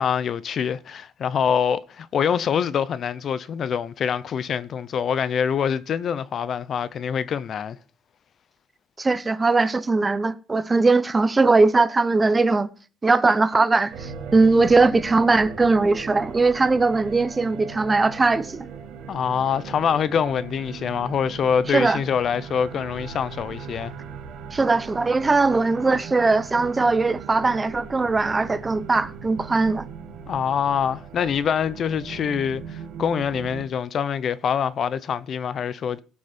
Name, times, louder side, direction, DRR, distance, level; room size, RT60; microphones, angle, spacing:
voice 1, 0.0-7.8 19.1-23.9 30.3-36.0, left 7 dB, 50° left, 0.8 m, -25 dB
voice 2, 9.0-12.7 13.0-18.6 21.7-22.0 24.5-29.9, right 3 dB, 20° right, 0.7 m, -20 dB
sound 1, 13.9-33.7, right 6 dB, 75° right, 1.7 m, -39 dB
17.5 x 7.2 x 4.4 m
cardioid pair, 120°, 0 cm